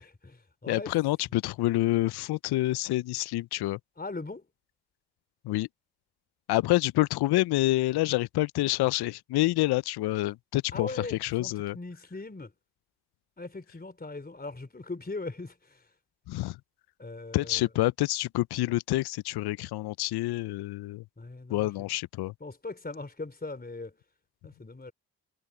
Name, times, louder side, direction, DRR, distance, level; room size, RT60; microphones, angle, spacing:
voice 1, 0.0-0.9 4.0-4.4 10.7-12.5 13.4-15.5 17.0-17.5 21.2-21.7 22.4-23.9 24.4-24.9, left 3 dB, 20° left, 3.5 m, -39 dB
voice 2, 0.7-3.8 5.4-5.7 6.5-11.8 16.3-16.6 17.3-21.0 21.5-22.3, left 17 dB, 60° left, 0.5 m, -27 dB
supercardioid pair, 55°, 44 cm